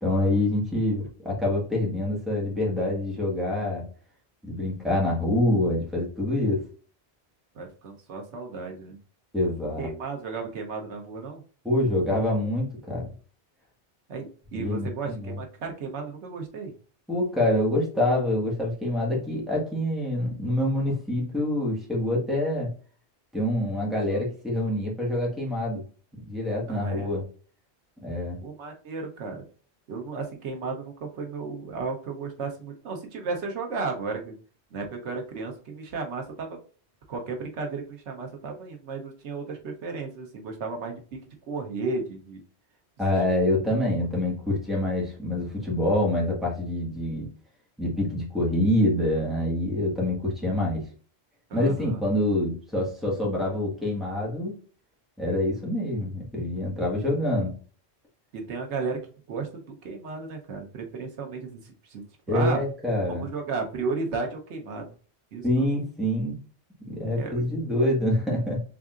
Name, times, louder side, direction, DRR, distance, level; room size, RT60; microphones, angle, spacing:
voice 1, 0.0-3.8 4.4-6.6 9.3-9.9 11.6-13.1 14.5-15.4 17.1-22.7 23.3-25.8 26.3-27.2 28.0-28.4 43.0-47.3 47.8-50.8 51.5-54.5 55.2-57.6 62.3-63.2 65.4-66.4 66.9-68.6, left 1 dB, ahead, -4 dB, 1.4 m, -26 dB
voice 2, 7.5-9.0 9.8-11.4 14.1-16.7 26.7-27.1 28.4-29.4 29.9-34.3 34.7-36.6 37.1-42.4 51.5-52.0 58.3-59.0 59.3-62.6 63.1-64.9 65.3-65.7 67.2-67.4, right 4 dB, 90° right, 3 dB, 1.1 m, -34 dB
4.0 x 3.6 x 2.4 m, 0.39 s
omnidirectional pair, 1.1 m